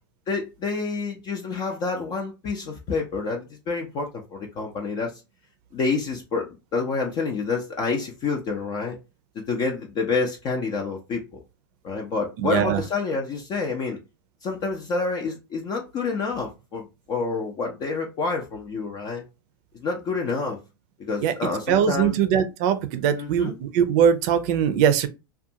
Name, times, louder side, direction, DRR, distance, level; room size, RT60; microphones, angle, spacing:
voice 1, 0.3-5.1 5.7-9.0 9.3-11.4 11.8-14.0 14.4-19.2 19.8-20.6 21.0-22.2 23.1-23.6, left 4 dB, 40° left, 0.6 m, -28 dB
voice 2, 12.4-12.8 21.2-21.3 21.7-25.1, right 8 dB, 55° right, 0.5 m, -21 dB
2.4 x 2.3 x 2.7 m
hypercardioid pair, 110°, 12 cm